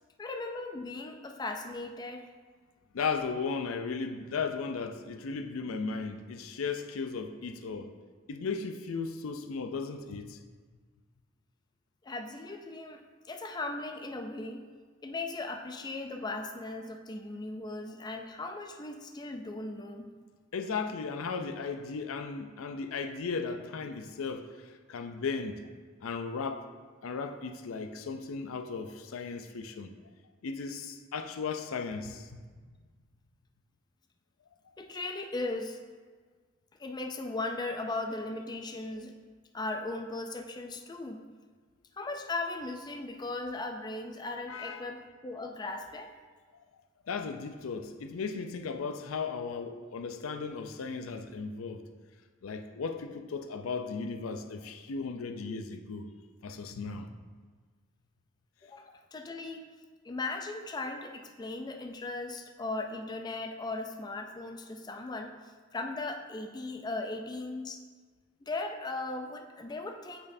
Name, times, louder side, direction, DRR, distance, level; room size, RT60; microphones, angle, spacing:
voice 1, 0.2-2.3 12.0-13.0 13.3-14.6 15.0-20.1 34.8-35.8 36.8-39.1 39.5-41.2 42.0-46.1 58.6-59.6 60.0-65.3 65.7-67.8 68.4-70.3, left 2 dB, 20° left, 4 dB, 0.4 m, -37 dB
voice 2, 2.9-7.9 8.3-10.4 20.5-24.5 24.9-25.7 26.0-26.7 27.0-29.9 30.4-32.4 44.5-44.9 47.1-51.8 52.4-56.1 56.4-57.1, left 5 dB, 85° left, 7 dB, 0.4 m, -36 dB
8.6 x 4.4 x 2.6 m, 1.5 s
head